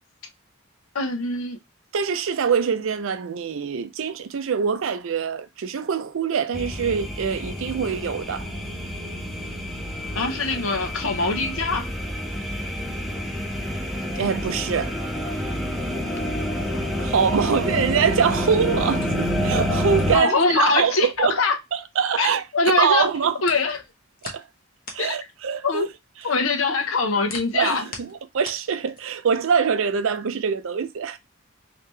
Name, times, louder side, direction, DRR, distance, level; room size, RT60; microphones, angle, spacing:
voice 1, 0.9-1.6 10.1-11.9 16.7-17.1 20.1-21.5 22.2-23.1 23.4-23.8 25.0-25.1 25.6-25.8 26.2-27.8, left 3 dB, 75° left, 0.8 m, -23 dB
voice 2, 1.9-8.5 14.2-15.0 17.0-21.4 21.7-22.4 22.8-23.4 24.2-24.4 24.9-25.9 26.2-26.3 27.5-31.2, right 6 dB, 65° right, 0.4 m, -24 dB
sound 1, 6.5-20.2, equal, ahead, 0.6 m, -28 dB
sound 2, 18.5-22.4 22.7-29.3, left 3 dB, 45° left, 0.9 m, -42 dB
3.2 x 2.8 x 3.2 m
head